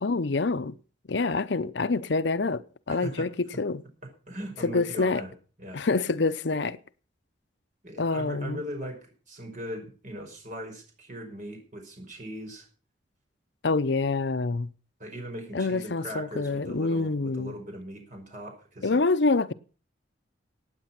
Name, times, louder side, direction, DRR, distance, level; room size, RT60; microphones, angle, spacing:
voice 1, 0.0-0.7 1.1-2.6 2.9-3.8 4.6-5.2 5.7-6.8 8.0-8.6 13.6-14.7 15.5-17.5 18.8-19.5, left 3 dB, 65° left, 0.7 m, -26 dB
voice 2, 2.9-3.3 4.0-5.3 5.6-5.8 7.8-12.7 15.0-19.0, equal, 40° right, 5.6 m, -39 dB
16.5 x 9.1 x 6.0 m
head